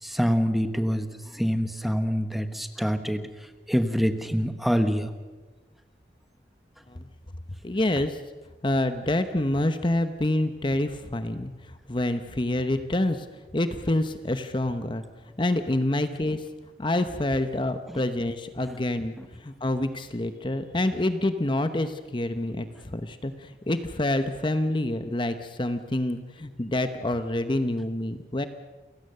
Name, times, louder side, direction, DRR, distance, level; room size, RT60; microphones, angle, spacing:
voice 1, 0.0-5.1 17.9-18.0 19.2-19.3, equal, ahead, 9 dB, 1.2 m, -26 dB
voice 2, 7.6-8.2 8.6-13.3 13.5-15.0 15.4-16.5 16.8-19.1 19.4-28.5, left 1 dB, 30° left, 9 dB, 0.9 m, -27 dB
29.0 x 16.0 x 6.6 m, 1.2 s
head